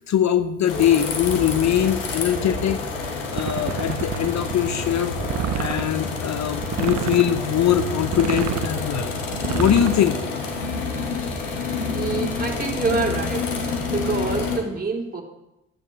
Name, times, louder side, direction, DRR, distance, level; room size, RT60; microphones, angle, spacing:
voice 1, 0.0-2.8 3.3-5.1 5.5-9.1 9.5-10.2, left 10 dB, 50° left, 10 dB, 0.7 m, -22 dB
sound 1, 0.7-14.6, left 4 dB, 90° left, 1.3 m, -28 dB
sound 2, 3.4-4.5 5.2-5.9 6.6-7.4 8.0-8.8 9.3-10.1, right 11 dB, 50° right, 0.6 m, -28 dB
voice 2, 11.9-13.6 13.9-15.2, right 4 dB, 25° right, -1 dB, 2.9 m, -26 dB
13.5 x 8.8 x 3.4 m, 0.87 s
hypercardioid pair, 45°, 36 cm